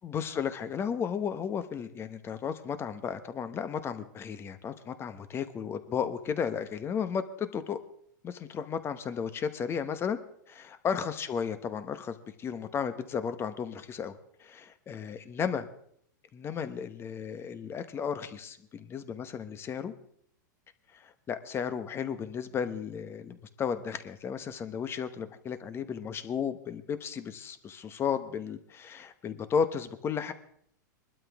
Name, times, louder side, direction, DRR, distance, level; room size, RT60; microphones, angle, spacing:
voice 1, 0.0-7.8 8.2-10.2 10.5-15.7 16.3-19.9 20.9-30.3, left 7 dB, 25° left, 11 dB, 1.1 m, -34 dB
22.0 x 12.5 x 3.6 m, 0.68 s
hypercardioid pair, 125°, 11 cm